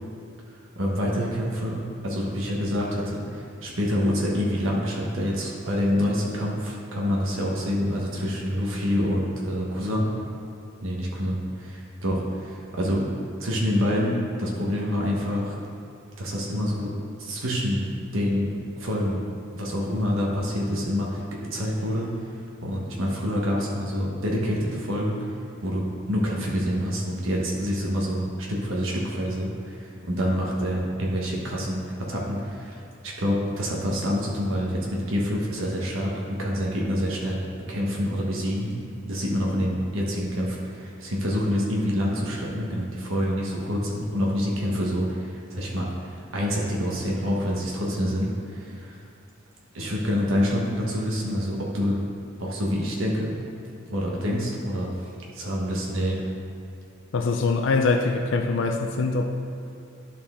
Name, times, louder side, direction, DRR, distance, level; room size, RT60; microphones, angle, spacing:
voice 1, 0.8-10.1 10.8-13.0 13.4-15.6 16.2-16.9 17.2-19.2 19.5-22.1 22.6-25.3 25.6-37.4 37.7-38.7 39.1-49.0 49.7-52.0 52.4-53.4 53.9-56.3, equal, 85° right, -3 dB, 1.2 m, -27 dB
voice 2, 57.1-59.3, left 3 dB, 70° left, 4 dB, 0.5 m, -23 dB
11.5 x 4.3 x 3.7 m, 2.5 s
head